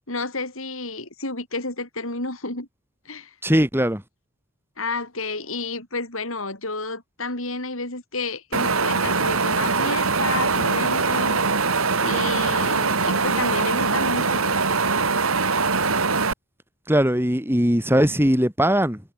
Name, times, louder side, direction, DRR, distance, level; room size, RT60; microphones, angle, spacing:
voice 1, 0.1-2.7 3.1-3.3 4.8-11.4 12.0-14.6, left 3 dB, 70° left, 7.7 m, -30 dB
voice 2, 3.4-4.0 16.9-19.0, equal, 10° right, 5.3 m, -20 dB
Wind, 8.5-16.3, right 4 dB, 80° right, 2.9 m, -22 dB
head